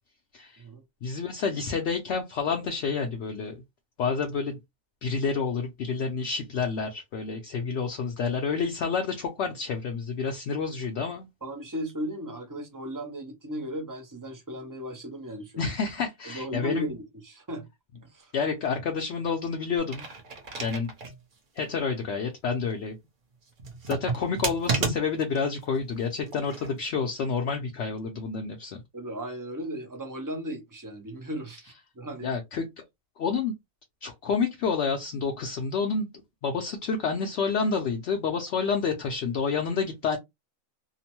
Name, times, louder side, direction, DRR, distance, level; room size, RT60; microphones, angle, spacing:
voice 1, 1.0-3.5 4.0-4.6 5.0-11.3 15.6-16.9 18.3-20.1 20.6-20.9 21.6-23.0 23.9-28.8 32.2-32.6 33.2-33.5 34.0-36.1 36.4-40.2, left 5 dB, 65° left, 0.7 m, -29 dB
voice 2, 11.4-15.7 16.2-17.7 18.0-18.3 28.9-32.4, equal, 30° right, 0.4 m, -36 dB
sound 1, 19.8-21.2 21.6-21.7 23.6-25.4 26.3-26.7, right 4 dB, 45° right, 0.8 m, -31 dB
2.9 x 2.1 x 2.9 m
omnidirectional pair, 1.4 m